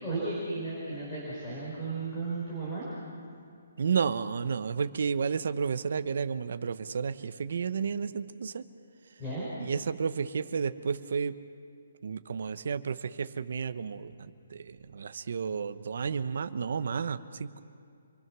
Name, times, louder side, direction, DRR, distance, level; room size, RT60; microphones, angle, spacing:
voice 1, 0.0-2.8 9.2-9.5, right 3 dB, 10° left, -8 dB, 5.3 m, -34 dB
voice 2, 3.8-8.6 9.6-11.4 12.0-17.6, right 6 dB, 50° right, 11 dB, 0.9 m, -32 dB
27.5 x 23.0 x 6.2 m, 2.4 s
hypercardioid pair, 175°, 0 cm